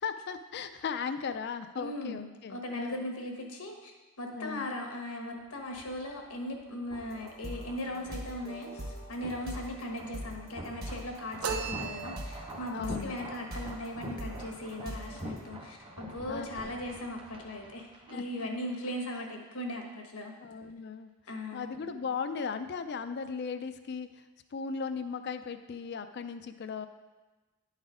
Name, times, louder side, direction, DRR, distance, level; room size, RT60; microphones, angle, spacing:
voice 1, 0.0-3.0 4.3-4.7 12.7-13.2 14.8-15.0 16.3-16.7 18.1-18.5 20.4-21.1 21.5-24.2 24.5-26.9, left 5 dB, 50° left, 9 dB, 0.4 m, -37 dB
voice 2, 1.8-20.3 21.3-21.7, left 1 dB, 80° left, 3 dB, 1.2 m, -38 dB
sound 1, 5.4-19.2 19.4-19.6, right 1 dB, 25° right, 0.7 m, -47 dB
sound 2, 7.0-12.5 12.8-15.2, right 1 dB, 45° right, 1.3 m, -42 dB
sound 3, 11.4-12.7, right 5 dB, 75° right, 0.7 m, -36 dB
10.5 x 4.1 x 4.9 m, 1.2 s
head